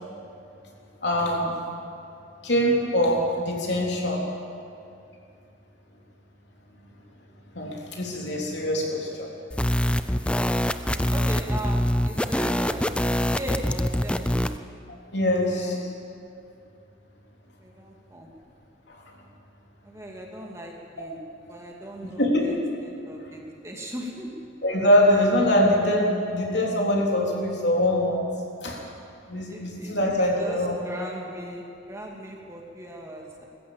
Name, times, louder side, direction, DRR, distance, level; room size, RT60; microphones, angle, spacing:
voice 1, 1.0-1.6 2.4-4.2 7.6-9.3 15.1-15.8 18.9-19.0 22.2-22.6 24.6-28.3 28.6-28.8 29.3-30.7, left 1 dB, 60° left, -2 dB, 3.7 m, -23 dB
sound 1, 9.5-14.6, equal, 5° left, 0.5 m, -25 dB
voice 2, 11.1-12.9 13.3-14.5 15.5-15.8 17.6-18.3 19.8-21.2 21.5-22.6 22.8-24.3 29.5-29.9 30.2-33.5, right 1 dB, 15° right, -1 dB, 2.3 m, -38 dB
20.5 x 15.0 x 8.7 m, 2.5 s
head